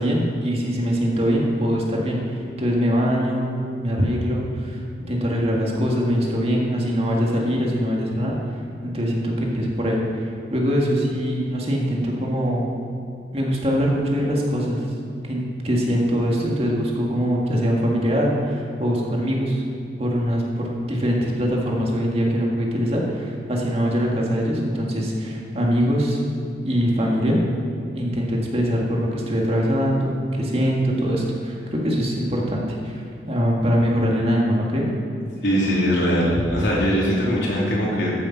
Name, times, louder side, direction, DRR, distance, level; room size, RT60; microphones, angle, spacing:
voice 1, 0.0-4.8 5.1-8.3 8.8-12.7 13.3-14.8 15.2-19.6 20.0-26.2 26.6-27.4 27.9-34.9, equal, 35° right, -2 dB, 2.0 m, -23 dB
voice 2, 35.4-38.1, equal, 85° left, -5 dB, 3.4 m, -21 dB
14.0 x 7.1 x 6.0 m, 2.5 s
head